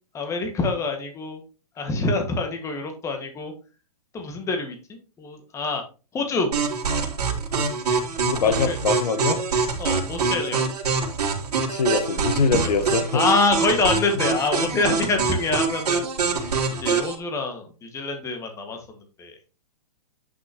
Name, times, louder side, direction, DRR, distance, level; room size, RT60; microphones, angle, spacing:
voice 1, 0.1-1.4 1.8-3.5 4.1-5.8 6.1-6.5 8.4-8.8 9.8-10.6 12.9-19.3, left 3 dB, 15° left, 4 dB, 1.6 m, -26 dB
sound 1, 6.5-17.1, right 5 dB, 75° right, 2.9 m, -25 dB
voice 2, 8.2-9.4 11.7-13.2, left 4 dB, 75° left, 9 dB, 1.3 m, -23 dB
9.8 x 6.2 x 2.9 m, 0.32 s
hypercardioid pair, 140°, 20 cm